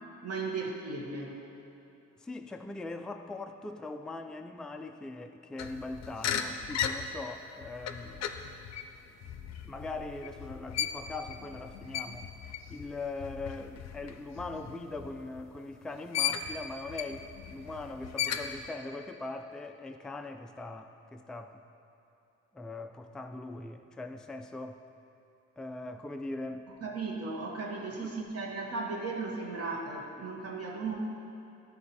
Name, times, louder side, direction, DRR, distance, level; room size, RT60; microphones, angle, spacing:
voice 1, 0.2-1.4 26.8-31.0, right 3 dB, 55° right, -1 dB, 1.5 m, -36 dB
voice 2, 2.2-8.3 9.6-12.3 12.7-21.6 22.5-24.8 25.6-26.7 28.0-28.2, left 2 dB, ahead, 5 dB, 0.3 m, -41 dB
sound 1, 5.6-15.7 16.1-18.7, left 8 dB, 60° left, 0.6 m, -37 dB
12.0 x 4.2 x 4.3 m, 2.9 s
cardioid pair, 90°, 30 cm